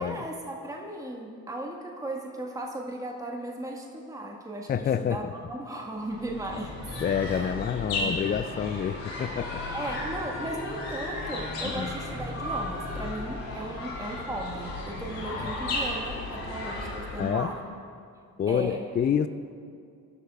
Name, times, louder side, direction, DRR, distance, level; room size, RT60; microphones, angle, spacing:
voice 1, 0.0-6.8 7.2-7.5 7.9-8.3 9.7-17.7 18.5-18.9, right 1 dB, 5° right, 0 dB, 1.6 m, -36 dB
voice 2, 4.7-5.2 7.0-9.6 11.6-11.9 15.2-15.5 17.2-17.5 18.4-19.3, left 8 dB, 25° left, 11 dB, 0.3 m, -28 dB
sound 1, 6.0-17.5, left 2 dB, 80° left, 2.1 m, -34 dB
23.0 x 11.0 x 2.4 m, 2.4 s
figure-of-eight pair, 45°, 49 cm